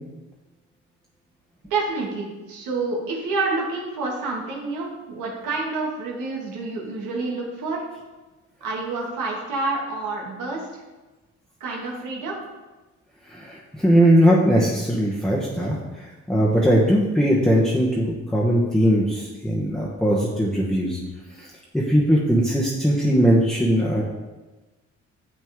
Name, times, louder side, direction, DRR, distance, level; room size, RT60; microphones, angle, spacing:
voice 1, 1.7-7.8 8.6-10.8 11.6-12.4, right 3 dB, 90° right, -2 dB, 2.0 m, -28 dB
voice 2, 13.3-21.0 21.4-21.5 21.7-24.0, equal, ahead, -4 dB, 1.1 m, -20 dB
7.4 x 6.2 x 3.6 m, 1.2 s
cardioid pair, 90°, 30 cm